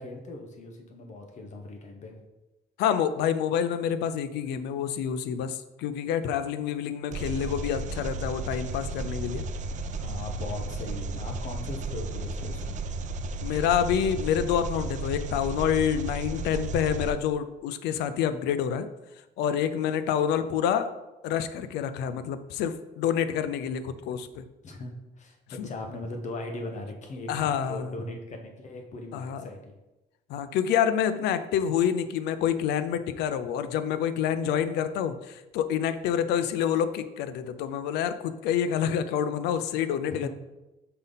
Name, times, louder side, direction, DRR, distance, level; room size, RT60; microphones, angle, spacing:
voice 1, 0.0-2.1 9.9-12.8 24.6-29.7 40.2-40.3, left 2 dB, 45° left, 3 dB, 1.2 m, -39 dB
voice 2, 2.8-9.4 13.4-18.9 19.4-20.9 21.2-24.4 25.6-25.7 27.3-27.9 29.1-29.4 30.3-40.3, left 8 dB, 85° left, 12 dB, 0.5 m, -27 dB
Engine, 7.1-17.1, right 3 dB, 45° right, 0.5 m, -34 dB
5.7 x 5.2 x 4.0 m, 1.0 s
cardioid pair, 110°, 17 cm